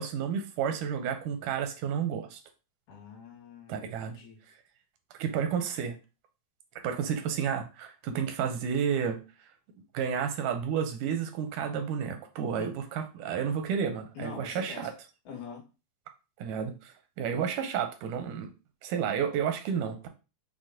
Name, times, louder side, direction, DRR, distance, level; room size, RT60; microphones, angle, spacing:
voice 1, 0.0-2.4 3.7-4.2 5.2-6.0 6.8-9.2 9.9-14.9 16.4-18.5 18.8-20.1, right 7 dB, 85° right, 7 dB, 2.1 m, -31 dB
voice 2, 2.9-4.4 12.6-12.7 14.1-14.9 15.3-15.6, left 5 dB, 75° left, 0 dB, 2.6 m, -44 dB
6.2 x 2.2 x 3.6 m, 0.30 s
omnidirectional pair, 3.7 m